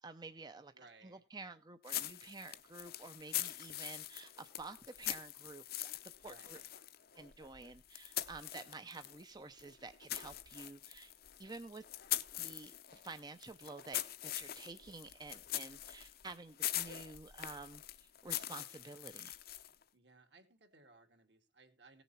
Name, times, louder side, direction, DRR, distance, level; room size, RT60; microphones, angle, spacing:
voice 1, 0.0-6.6 7.1-11.1 11.4-11.8 12.4-19.4, right 3 dB, 25° right, 9 dB, 0.6 m, -51 dB
voice 2, 0.7-1.2 6.2-6.7 19.9-22.0, right 3 dB, 65° right, 5 dB, 2.5 m, -62 dB
sound 1, 1.8-9.2 9.6-19.8, left 13 dB, 55° left, 0.7 m, -43 dB
17.0 x 7.0 x 4.3 m, 0.28 s
head